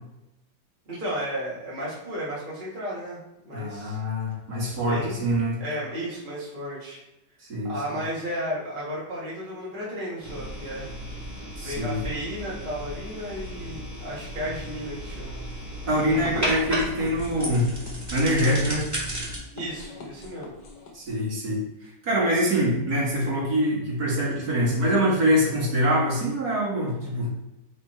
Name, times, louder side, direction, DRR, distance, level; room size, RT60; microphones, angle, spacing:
voice 1, 0.9-4.0 4.9-5.3 5.6-7.0 7.7-10.9 11.6-15.4 19.5-20.5, equal, 30° right, -7 dB, 1.8 m, -33 dB
voice 2, 3.5-5.6 7.5-8.0 11.6-12.0 15.9-17.7 18.1-18.8 20.9-27.3, equal, 60° right, -7 dB, 2.8 m, -24 dB
sound 1, 10.2-19.4, right 1 dB, 10° right, 2.1 m, -34 dB
sound 2, 14.4-21.1, left 3 dB, 75° left, 1.6 m, -42 dB
7.7 x 3.6 x 4.4 m, 0.91 s
omnidirectional pair, 1.9 m